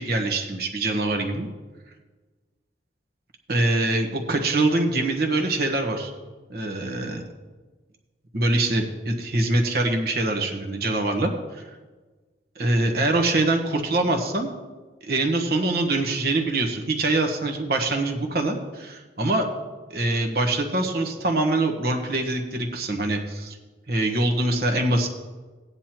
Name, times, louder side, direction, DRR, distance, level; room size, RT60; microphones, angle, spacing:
voice 1, 0.0-1.5 3.5-6.1 6.5-7.2 8.3-11.6 12.5-14.5 15.0-19.5 19.9-23.6 23.9-25.1, right 2 dB, 60° right, 3 dB, 1.3 m, -24 dB
16.0 x 9.6 x 3.0 m, 1.3 s
head